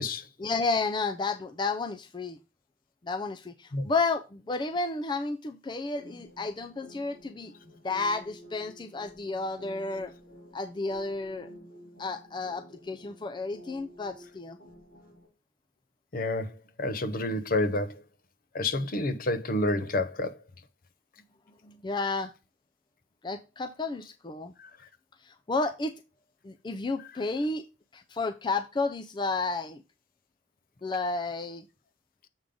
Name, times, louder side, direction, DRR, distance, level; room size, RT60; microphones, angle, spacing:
voice 1, 0.4-2.4 3.0-7.5 7.8-10.1 10.5-11.5 12.0-14.6 21.6-22.3 23.2-24.5 25.2-25.9 26.4-27.6 27.9-29.8 30.8-31.7, left 3 dB, 25° left, 0.4 m, -32 dB
sound 1, 6.0-15.3, equal, 90° left, 3.9 m, -51 dB
voice 2, 16.1-18.0 18.5-20.4 27.0-27.1, left 2 dB, 55° left, 0.8 m, -29 dB
7.2 x 3.8 x 4.9 m
head